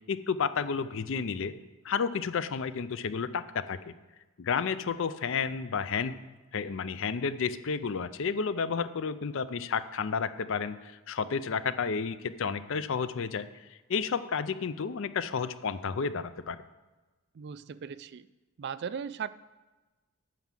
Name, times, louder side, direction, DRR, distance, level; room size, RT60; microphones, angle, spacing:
voice 1, 0.1-1.5 1.8-3.9 4.4-6.2 6.5-13.4 13.9-16.6, left 5 dB, 60° left, 13 dB, 0.5 m, -31 dB
voice 2, 17.3-18.3 18.6-19.3, right 7 dB, 50° right, 15 dB, 0.3 m, -37 dB
9.0 x 6.1 x 7.4 m, 1.2 s
head